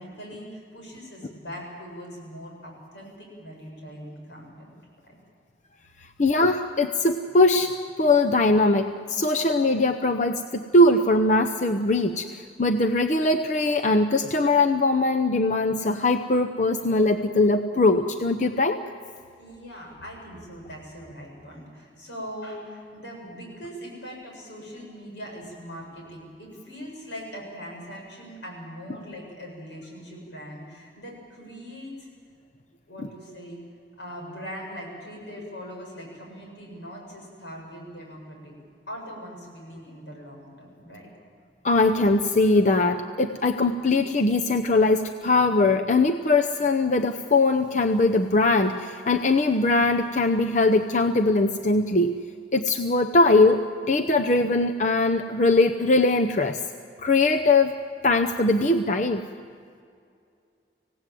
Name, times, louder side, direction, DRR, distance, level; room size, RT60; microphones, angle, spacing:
voice 1, 0.0-4.7 5.1-5.2 19.4-32.1 32.9-33.6 34.0-38.5 38.9-41.1, equal, 85° left, -1 dB, 7.6 m, -41 dB
voice 2, 6.2-18.8 41.6-52.1 52.5-56.6 57.0-57.7 58.0-59.2, left 2 dB, 40° left, 5 dB, 0.7 m, -21 dB
26.0 x 17.5 x 7.8 m, 2.3 s
head